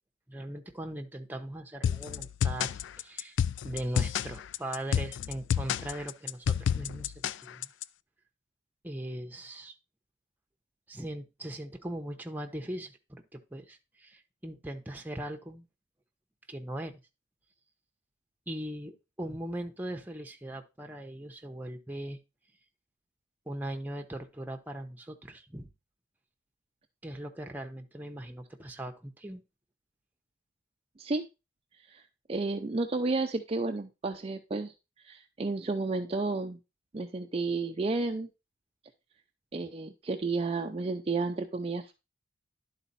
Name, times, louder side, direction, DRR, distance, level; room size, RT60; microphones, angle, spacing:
voice 1, 0.3-3.4 3.6-7.7 8.8-9.7 10.9-15.7 16.5-16.9 18.5-22.2 23.5-25.7 27.0-29.4, right 1 dB, 10° right, 3 dB, 0.8 m, -39 dB
sound 1, 1.8-7.8, left 8 dB, 65° left, 0.3 m, -30 dB
voice 2, 32.3-34.7 35.0-36.6 36.9-38.3 39.5-41.9, right 3 dB, 30° right, 4 dB, 0.5 m, -31 dB
11.0 x 4.0 x 4.1 m, 0.27 s
head